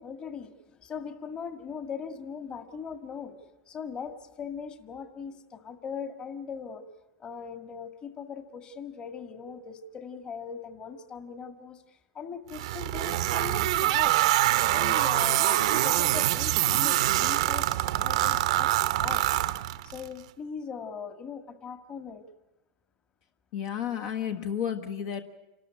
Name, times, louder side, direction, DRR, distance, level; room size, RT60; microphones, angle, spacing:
voice 1, 0.0-3.3 3.7-6.8 7.2-14.3 14.7-19.6 19.8-22.2, left 6 dB, 30° left, 8 dB, 1.8 m, -40 dB
sound 1, 12.5-20.1, right 15 dB, 75° right, 0.7 m, -25 dB
voice 2, 23.5-25.2, left 9 dB, 65° left, 5 dB, 1.4 m, -32 dB
28.0 x 13.0 x 9.5 m, 1.0 s
supercardioid pair, 125°, 3 cm